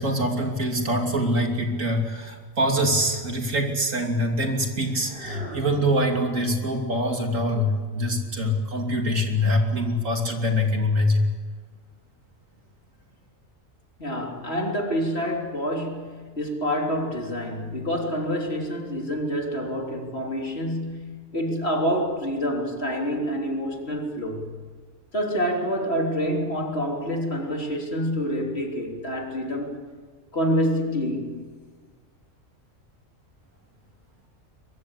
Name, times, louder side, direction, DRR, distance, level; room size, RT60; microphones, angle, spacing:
voice 1, 0.0-11.3, equal, 70° right, 2 dB, 3.4 m, -24 dB
sound 1, 2.2-3.6 4.5-6.3 7.0-8.4, left 2 dB, 50° right, 6.6 m, -38 dB
voice 2, 14.0-24.5 25.1-29.8 30.3-31.4, equal, 50° left, 1 dB, 3.8 m, -27 dB
23.0 x 22.5 x 8.3 m, 1.5 s
omnidirectional pair, 1.4 m